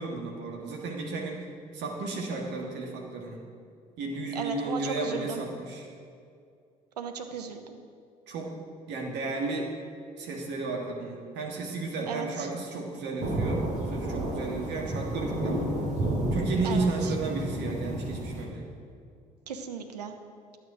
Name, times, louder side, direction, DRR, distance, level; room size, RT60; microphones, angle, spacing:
voice 1, 0.0-1.4 1.7-3.4 4.0-5.9 8.3-8.5 8.9-9.7 10.2-15.6 16.3-18.6, right 3 dB, 60° right, 0 dB, 1.7 m, -33 dB
voice 2, 4.3-5.4 7.0-7.8 12.1-12.5 16.6-17.1 19.5-20.1, right 6 dB, 90° right, 6 dB, 0.6 m, -36 dB
sound 1, 13.2-18.4, right 1 dB, 40° right, 2.5 m, -31 dB
11.5 x 8.9 x 4.9 m, 2.3 s
figure-of-eight pair, 50°, 20 cm